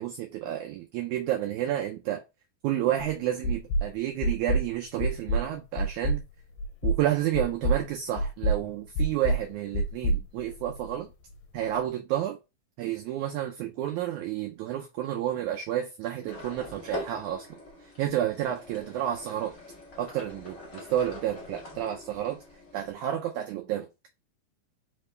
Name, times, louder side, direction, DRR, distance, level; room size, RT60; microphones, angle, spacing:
voice 1, 0.0-2.2 2.6-6.2 6.8-11.1 11.5-12.4 12.8-17.5 17.8-19.5 20.0-22.4 22.7-23.9, right 11 dB, 85° right, 1.7 m, -30 dB
sound 1, 3.0-3.1 3.4-3.9 4.2-4.7 5.0-5.5 5.8-6.2 6.6-7.0 7.3-7.8 8.2-8.6 9.0-9.4 9.7-10.9, right 1 dB, 80° left, 2.1 m, -26 dB
sound 2, 16.3-22.9, left 2 dB, 45° left, 1.1 m, -43 dB
5.0 x 2.9 x 3.2 m
omnidirectional pair, 4.0 m